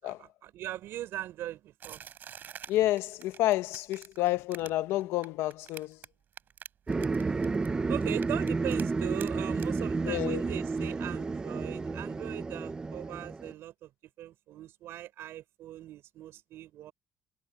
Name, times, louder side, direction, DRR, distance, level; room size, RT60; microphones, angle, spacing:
voice 1, 0.0-2.0 7.9-16.9, right 13 dB, 70° right, 5.4 m, -40 dB
sound 1, 1.8-6.1 6.3-7.7 8.0-8.8 9.2-9.3 9.6-9.7, right 9 dB, 45° right, 6.6 m, -46 dB
voice 2, 2.7-6.0 10.1-10.4, left 15 dB, 90° left, 1.0 m, -29 dB
sound 2, 6.9-13.5, right 4 dB, 20° right, 0.8 m, -31 dB
cardioid pair, 140°, 4 cm